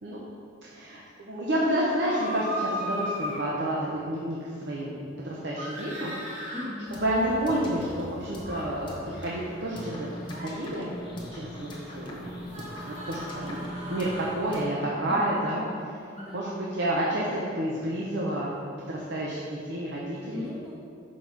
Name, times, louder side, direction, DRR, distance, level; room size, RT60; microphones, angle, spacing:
voice 1, 0.7-5.0 5.2-6.2 6.5-6.6 6.9-10.9 11.3-11.7 11.9-12.3 12.7-15.6 16.3-18.5 18.9-20.5, right 1 dB, 65° right, -5 dB, 0.7 m, -30 dB
sound 1, 1.9-3.4 5.6-6.7 8.4-8.6 10.2-10.5 12.5-14.4 16.2-16.3, equal, 35° right, 1.1 m, -36 dB
voice 2, 6.5-7.4 14.6-15.9 16.1-16.4 20.3-20.7, left 1 dB, ahead, -8 dB, 1.3 m, -39 dB
sound 2, 6.9-14.6, equal, 25° left, 0.9 m, -41 dB
6.2 x 4.1 x 4.6 m, 2.4 s
head